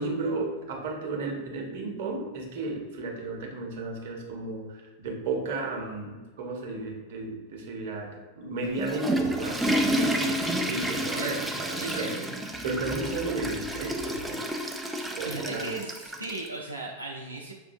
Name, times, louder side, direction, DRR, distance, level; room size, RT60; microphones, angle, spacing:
voice 1, 0.0-12.2 12.6-14.4 15.1-15.7, right 3 dB, 50° right, 0 dB, 0.9 m, -34 dB
Water / Toilet flush, 8.6-16.5, right 1 dB, 5° right, 0.4 m, -30 dB
voice 2, 11.8-12.3 14.9-17.5, right 2 dB, 85° right, -3 dB, 0.4 m, -37 dB
6.3 x 2.6 x 2.6 m, 1.3 s
figure-of-eight pair, 90°, 0 cm